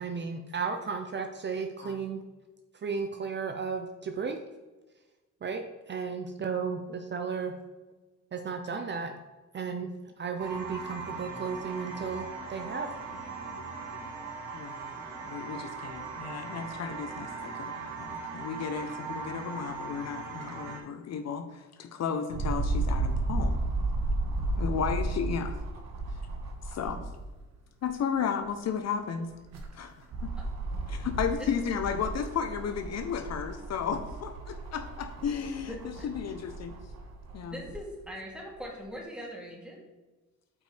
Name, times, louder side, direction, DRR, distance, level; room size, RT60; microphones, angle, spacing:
voice 1, 0.0-2.2 2.7-4.4 5.4-7.6 8.3-9.1 9.5-9.9 10.2-12.9, right 5 dB, 35° right, 5 dB, 0.6 m, -34 dB
sound 1, 10.4-20.8, right 4 dB, 80° right, 1.8 m, -39 dB
voice 2, 14.5-14.9 15.2-23.6 24.6-25.5 26.7-27.1 27.8-29.3 29.7-30.3 30.9-35.8 36.0-36.7 37.3-37.6, left 7 dB, 60° left, 7 dB, 0.7 m, -34 dB
sound 2, 22.3-27.4 27.8-27.9 29.2-37.8 38.6-38.7, right 2 dB, 60° right, 1.5 m, -33 dB
voice 3, 35.7-36.1 37.5-39.8, equal, 5° right, -3 dB, 2.3 m, -41 dB
8.3 x 5.2 x 3.3 m, 1.2 s
cardioid pair, 90°, 30 cm